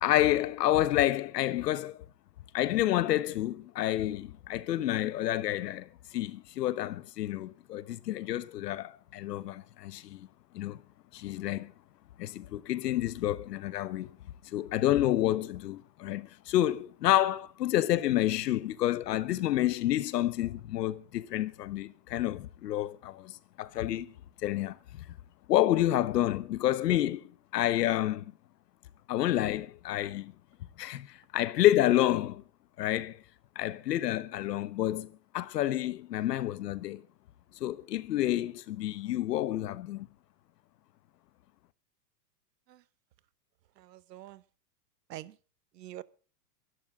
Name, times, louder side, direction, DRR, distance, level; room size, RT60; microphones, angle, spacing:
voice 1, 0.0-2.0 2.5-10.3 10.5-10.8 11.1-11.7 12.2-14.2 14.4-24.1 24.4-25.0 25.5-28.3 29.1-30.3 30.8-32.4 32.8-33.2 33.5-37.0 37.6-40.1, left 13 dB, 75° left, 1.4 m, -29 dB
voice 2, 43.8-44.4 45.1-45.4 45.7-46.0, right 14 dB, 75° right, 1.3 m, -45 dB
23.5 x 12.0 x 3.8 m
supercardioid pair, 165°, 49 cm